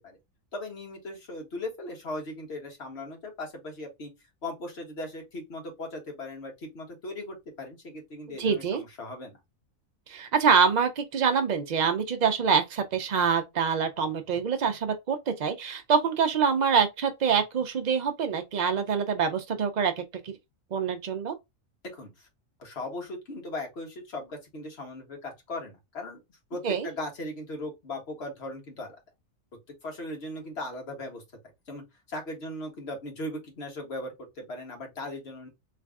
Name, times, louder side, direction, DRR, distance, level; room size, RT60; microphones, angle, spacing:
voice 1, 0.5-4.1 4.4-9.4 21.9-22.1 22.6-26.2 26.5-29.0 29.8-31.2 31.7-35.5, left 1 dB, 50° left, 1.4 m, -38 dB
voice 2, 8.4-8.8 10.1-20.3 20.7-21.4 26.6-26.9, right 6 dB, 85° right, 0.3 m, -25 dB
3.2 x 2.5 x 3.4 m
omnidirectional pair, 1.4 m